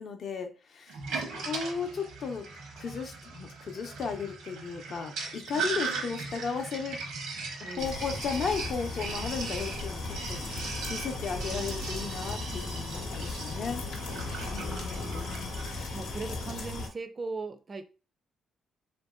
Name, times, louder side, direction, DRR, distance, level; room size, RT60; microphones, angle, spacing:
voice 1, 0.0-2.5 2.7-7.0 7.6-10.0 10.3-10.4 10.9-13.8 14.4-16.0, left 5 dB, 60° left, 5 dB, 0.6 m, -35 dB
Sink (filling or washing), 0.9-15.9, right 4 dB, 85° right, 0.8 m, -39 dB
voice 2, 1.1-1.4 7.6-7.9 14.6-14.8 15.0-15.3 15.9-17.9, right 3 dB, 35° right, 10 dB, 0.4 m, -39 dB
sound 1, 7.8-16.9, left 3 dB, 80° left, 0.8 m, -37 dB
3.0 x 2.6 x 2.2 m, 0.33 s
cardioid pair, 90°, 0 cm